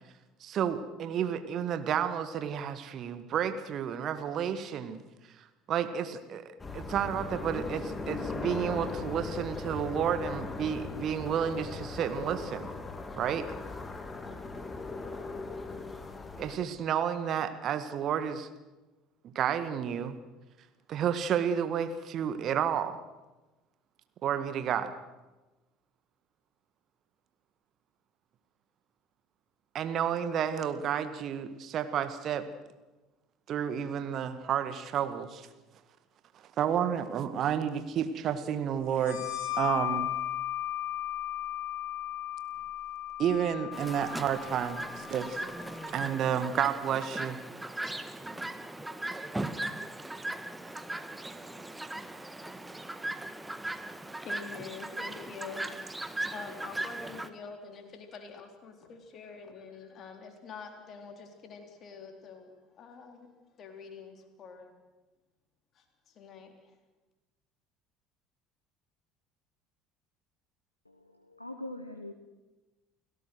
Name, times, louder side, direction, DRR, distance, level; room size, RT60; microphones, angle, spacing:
voice 1, 0.4-5.0 5.7-6.4 6.7-12.7 13.2-13.5 16.4-18.5 19.2-20.2 20.9-23.0 24.2-24.9 29.7-32.5 33.5-35.5 36.6-39.2 39.6-40.1 43.2-45.5 45.9-47.4, right 8 dB, 45° right, 10 dB, 1.8 m, -31 dB
sound 1, 6.6-16.6, left 3 dB, 15° left, 2.4 m, -39 dB
sound 2, 38.9-46.2, left 13 dB, 60° left, 5.5 m, -36 dB
Chirp tweet, 43.7-57.3, right 1 dB, 10° right, 1.5 m, -38 dB
voice 2, 54.0-55.9 56.2-63.3 63.6-64.7 65.8-66.5, left 5 dB, 40° left, 4 dB, 3.9 m, -46 dB
voice 3, 70.8-72.1, left 1 dB, 85° left, 7 dB, 1.1 m, -42 dB
30.0 x 17.5 x 6.4 m, 1.1 s
figure-of-eight pair, 60°, 0 cm